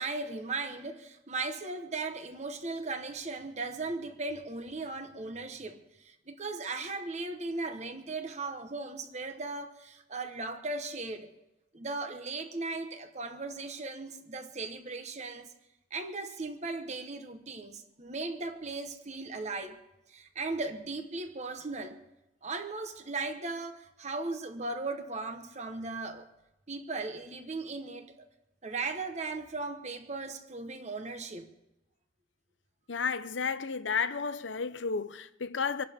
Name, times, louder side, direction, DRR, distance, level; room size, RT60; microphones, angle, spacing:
voice 1, 0.0-11.3 11.7-15.5 15.9-19.8 20.1-22.0 22.4-26.3 26.7-28.3 28.6-31.5, right 3 dB, 40° right, 1.1 m, -37 dB
voice 2, 32.9-35.8, left 5 dB, 80° left, 0.8 m, -32 dB
27.0 x 11.5 x 3.6 m
head